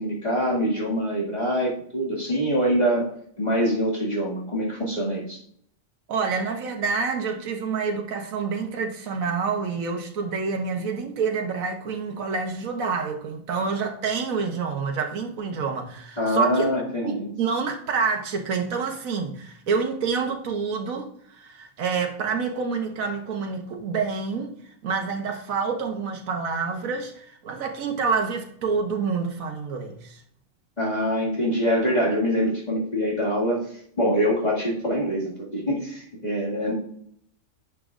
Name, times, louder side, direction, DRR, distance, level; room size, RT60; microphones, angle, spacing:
voice 1, 0.0-3.1 3.4-5.4 16.2-17.3 30.8-33.7 34.0-36.7, equal, 30° left, -6 dB, 2.1 m, -24 dB
voice 2, 6.1-16.7 17.0-24.5 24.8-30.2, right 5 dB, 90° right, 3 dB, 1.4 m, -27 dB
11.0 x 7.2 x 2.5 m, 0.67 s
omnidirectional pair, 1.4 m